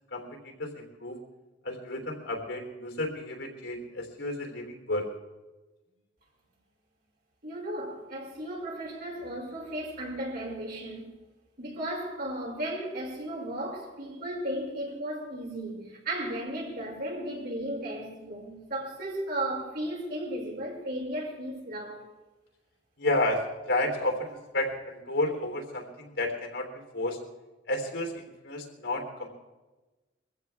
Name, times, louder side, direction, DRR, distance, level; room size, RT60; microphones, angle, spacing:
voice 1, 0.1-1.2 1.6-5.1 23.0-26.7 26.9-27.2 27.7-29.3, left 1 dB, 70° left, 3.6 m, -31 dB
voice 2, 7.4-11.1 11.6-22.0, right 1 dB, 55° right, 6.0 m, -35 dB
23.0 x 15.0 x 3.6 m
head